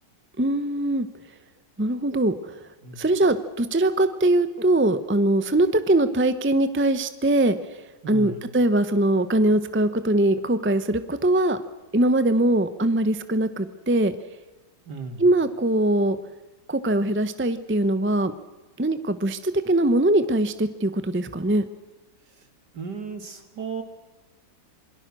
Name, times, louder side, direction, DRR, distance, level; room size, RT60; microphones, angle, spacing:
voice 1, 0.4-1.1 1.8-2.6 3.0-7.5 8.1-11.6 11.9-14.1 15.2-16.2 16.7-18.3 18.8-21.7, right 1 dB, 10° right, 11 dB, 0.8 m, -22 dB
voice 2, 8.0-8.4 14.9-15.2 22.7-23.8, right 5 dB, 65° right, 7 dB, 3.1 m, -35 dB
27.5 x 23.0 x 6.3 m, 1.2 s
omnidirectional pair, 1.9 m